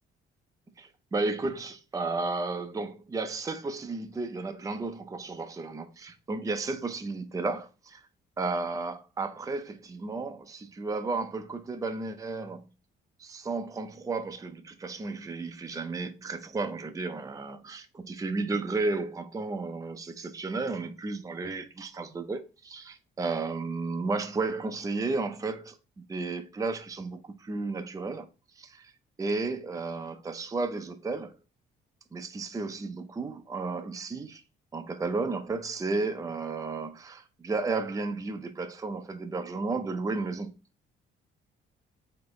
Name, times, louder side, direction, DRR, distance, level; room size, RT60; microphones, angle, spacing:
voice 1, 0.8-8.0 8.4-12.6 13.2-25.8 26.1-28.3 28.6-28.9 29.2-31.4 32.1-34.4 34.7-40.5, right 3 dB, 15° right, 0.5 m, -33 dB
3.9 x 2.9 x 3.0 m
cardioid pair, 90°, 20 cm